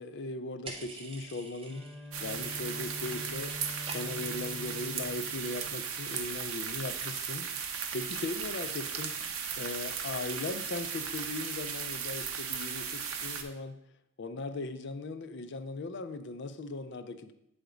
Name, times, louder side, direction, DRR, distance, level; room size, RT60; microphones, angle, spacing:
voice 1, 0.0-1.9 2.2-3.6 3.8-7.5 7.9-9.2 9.6-13.8 14.2-17.3, left 2 dB, 55° left, 10 dB, 0.5 m, -38 dB
sound 1, 0.7-2.3 2.5-3.1 3.3-4.4, right 2 dB, 25° right, 0.7 m, -47 dB
Bowed string instrument, 1.6-6.7, left 1 dB, ahead, 1.7 m, -46 dB
sound 2, 2.1-13.4, right 7 dB, 75° right, 0.7 m, -36 dB
7.8 x 3.5 x 5.0 m, 0.81 s
head